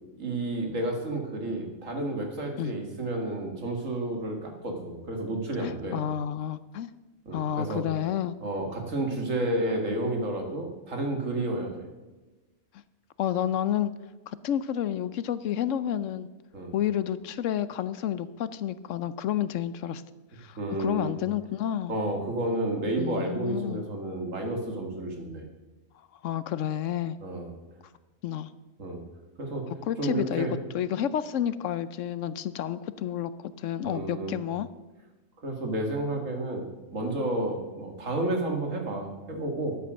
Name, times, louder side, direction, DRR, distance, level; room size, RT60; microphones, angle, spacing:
voice 1, 0.2-6.0 7.3-7.8 8.4-11.8 16.5-16.7 20.6-21.1 21.9-25.4 27.2-27.5 28.8-29.0 29.4-29.6 30.0-30.5 33.8-34.4 35.4-36.7 36.9-39.8, right 1 dB, 60° right, 3 dB, 2.4 m, -31 dB
voice 2, 5.6-6.9 7.3-8.4 13.2-13.9 14.3-16.3 16.7-20.0 20.4-22.0 23.0-23.8 26.2-27.2 28.2-28.5 29.7-30.5 30.7-33.3 33.6-34.7, left 10 dB, 70° left, 15 dB, 0.9 m, -30 dB
12.5 x 8.3 x 6.4 m, 1.2 s
omnidirectional pair, 1.5 m